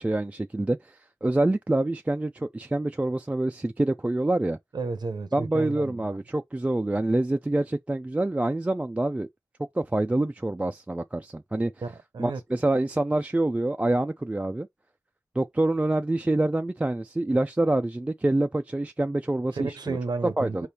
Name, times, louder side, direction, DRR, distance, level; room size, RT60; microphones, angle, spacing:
voice 1, 0.0-4.6 5.3-9.3 9.8-11.7 12.2-14.7 15.4-20.0 20.4-20.7, right 2 dB, 15° right, 0.3 m, -26 dB
voice 2, 4.7-6.2 11.8-12.4 19.5-20.7, right 4 dB, 65° right, 0.7 m, -32 dB
4.7 x 3.3 x 2.8 m
wide cardioid pair, 65°, 8 cm